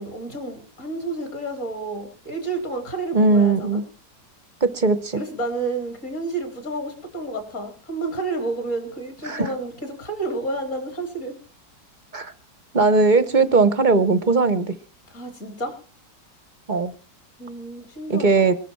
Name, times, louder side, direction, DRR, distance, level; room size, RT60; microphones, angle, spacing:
voice 1, 0.0-3.8 5.2-11.3 15.1-15.7 17.4-18.5, right 2 dB, 45° left, 5 dB, 4.2 m, -30 dB
voice 2, 3.1-3.8 4.6-5.2 9.2-9.5 12.1-12.3 12.7-14.7 16.7-16.9 18.1-18.5, right 3 dB, 35° right, 14 dB, 0.8 m, -19 dB
21.5 x 12.0 x 4.5 m, 0.37 s
omnidirectional pair, 1.9 m